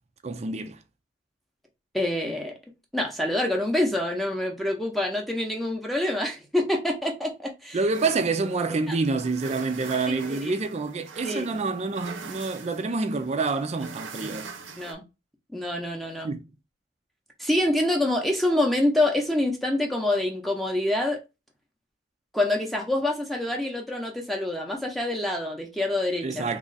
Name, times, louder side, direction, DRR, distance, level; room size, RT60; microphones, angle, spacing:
voice 1, 0.2-0.8 7.7-14.5 16.2-16.4 26.2-26.6, right 3 dB, 35° right, 0.4 m, -27 dB
voice 2, 1.9-2.5 2.9-7.8 8.9-9.0 10.3-10.6 11.2-11.5 14.8-15.0 15.5-16.3 17.4-21.2 22.3-26.4, left 1 dB, ahead, 0.7 m, -26 dB
sound 1, 7.9-14.9, right 5 dB, 85° right, 0.7 m, -43 dB
3.0 x 2.4 x 3.9 m
head